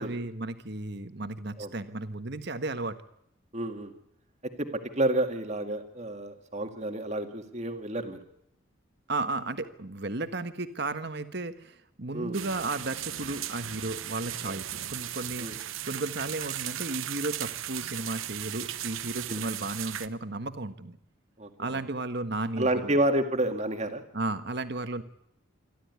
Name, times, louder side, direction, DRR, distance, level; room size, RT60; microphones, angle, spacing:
voice 1, 0.0-3.0 9.1-21.0 21.6-22.9 24.1-25.0, right 2 dB, 55° right, 10 dB, 1.5 m, -34 dB
voice 2, 3.5-3.9 4.4-4.7 5.0-8.2 12.1-12.4 14.4-14.6 15.4-15.6 19.3-19.4 21.4-21.8 22.6-24.0, right 1 dB, 35° right, 6 dB, 2.1 m, -30 dB
sound 1, 12.3-20.1, right 12 dB, 75° right, 1.0 m, -37 dB
26.5 x 13.0 x 9.6 m, 0.77 s
head